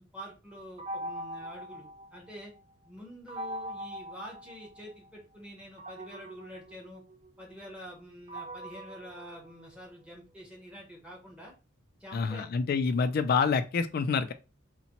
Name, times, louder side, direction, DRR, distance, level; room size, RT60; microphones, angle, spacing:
voice 1, 0.0-2.5 2.9-7.0 7.4-11.5 12.0-12.5, equal, 5° right, 0.9 m, -47 dB
sound 1, 0.8-2.6 3.3-5.1 5.8-10.0, right 1 dB, 30° right, 0.4 m, -42 dB
voice 2, 12.1-14.3, left 5 dB, 50° left, 0.3 m, -27 dB
3.9 x 2.1 x 2.8 m
head